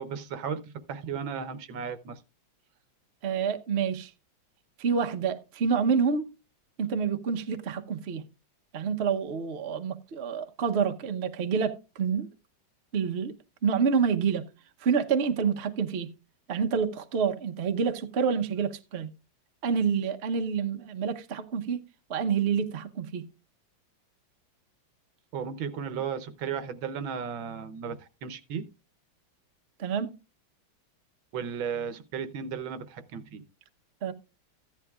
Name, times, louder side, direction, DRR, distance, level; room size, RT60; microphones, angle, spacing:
voice 1, 0.0-2.2 25.3-28.6 31.3-33.4, right 7 dB, 75° right, 1.6 m, -35 dB
voice 2, 3.2-4.1 4.8-6.3 6.8-8.2 8.7-12.3 12.9-13.3 13.6-14.4 14.8-16.1 16.5-19.1 19.6-21.8 22.1-23.3 29.8-30.1 34.0-34.1, right 6 dB, 50° right, 0.8 m, -28 dB
15.0 x 10.5 x 2.4 m
omnidirectional pair, 2.2 m